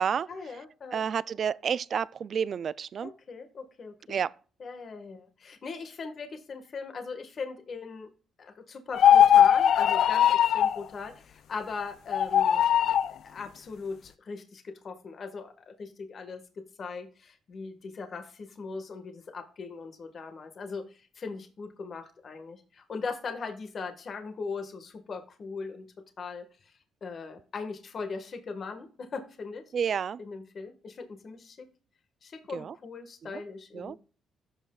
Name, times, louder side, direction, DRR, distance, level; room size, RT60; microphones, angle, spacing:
voice 1, 0.3-1.0 3.0-4.2 4.6-8.1 8.4-12.6 13.1-16.4 16.8-25.9 26.2-29.6 30.2-31.7 32.2-34.0, left 4 dB, 50° left, 1.5 m, -40 dB
voice 2, 0.9-3.1 4.1-4.3 29.7-30.2 32.5-32.7 33.2-33.4 33.7-34.0, right 7 dB, 55° right, 0.3 m, -30 dB
sound 1, 8.9-10.8 12.1-13.1, left 10 dB, 65° left, 0.4 m, -20 dB
13.5 x 5.5 x 2.3 m
cardioid pair, 90°, 0 cm